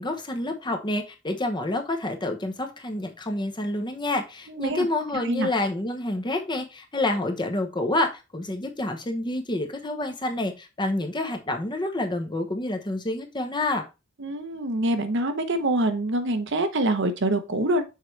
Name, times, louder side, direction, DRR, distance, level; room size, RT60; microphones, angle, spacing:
voice 1, 0.0-13.8, left 2 dB, 25° left, 5 dB, 0.9 m, -28 dB
voice 2, 4.5-4.9 5.2-5.5 14.2-17.8, right 1 dB, 60° right, 8 dB, 0.9 m, -25 dB
6.6 x 4.7 x 3.3 m, 0.28 s
head